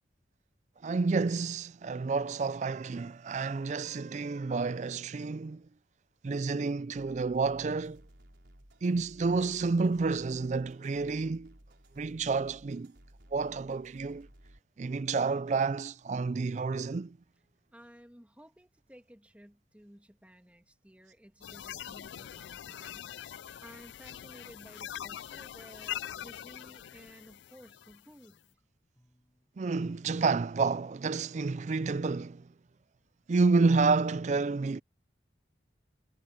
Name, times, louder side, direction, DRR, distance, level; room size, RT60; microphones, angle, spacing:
voice 1, 0.8-5.6 6.2-8.0 8.8-11.5 12.0-12.9 13.3-14.3 14.8-17.2 29.6-32.4 33.3-34.8, right 4 dB, 40° right, 0.4 m, -29 dB
sound 1, 6.9-14.6, equal, 70° right, 4.3 m, -57 dB
voice 2, 17.7-28.4, equal, 10° right, 2.1 m, -55 dB
sound 2, 21.4-28.3, left 11 dB, 85° left, 0.3 m, -43 dB
sound 3, 26.8-31.6, equal, 15° left, 7.0 m, -73 dB
head